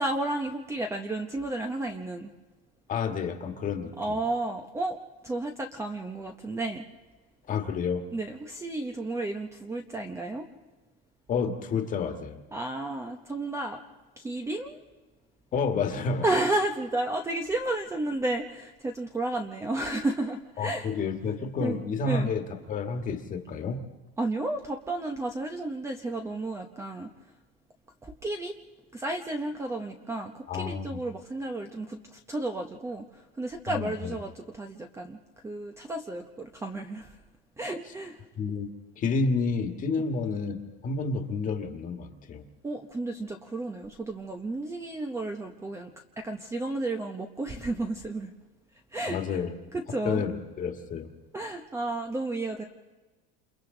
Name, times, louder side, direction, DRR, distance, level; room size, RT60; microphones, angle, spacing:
voice 1, 0.0-2.3 4.0-5.0 5.2-6.8 8.1-10.5 12.5-13.8 14.2-14.8 16.2-20.9 21.6-22.3 24.2-27.1 28.0-28.6 28.9-35.2 35.4-37.2 37.6-38.2 42.6-48.3 48.9-49.4 49.7-50.3 51.3-52.6, right 2 dB, 10° right, 4 dB, 0.8 m, -32 dB
voice 2, 2.9-4.2 7.5-8.0 11.3-12.4 15.5-16.2 20.6-23.9 30.5-31.0 33.7-34.2 38.4-38.7 39.0-40.6 40.8-42.4 49.1-49.5 50.0-51.1, left 4 dB, 25° left, 6 dB, 1.7 m, -30 dB
28.5 x 28.5 x 3.9 m, 1.2 s
cardioid pair, 170°, 30 cm